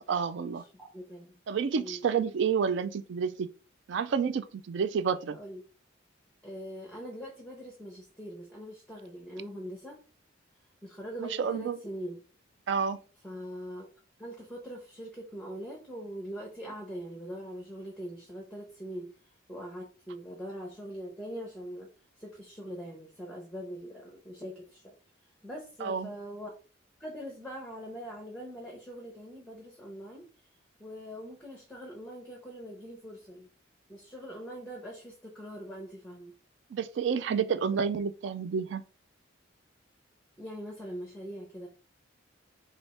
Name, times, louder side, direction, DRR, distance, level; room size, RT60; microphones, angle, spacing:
voice 1, 0.0-0.6 1.5-3.5 3.9-5.4 11.2-11.8 12.7-13.0 25.8-26.1 36.7-38.8, right 6 dB, 65° right, 0.3 m, -29 dB
voice 2, 0.6-1.4 1.8-2.1 5.3-5.6 6.4-10.0 10.8-12.2 13.2-13.9 14.2-19.1 19.5-21.9 22.2-24.9 25.4-26.5 27.0-30.3 30.8-33.5 33.9-36.3 40.4-41.7, equal, 5° left, 0.7 m, -42 dB
3.3 x 2.4 x 4.1 m
head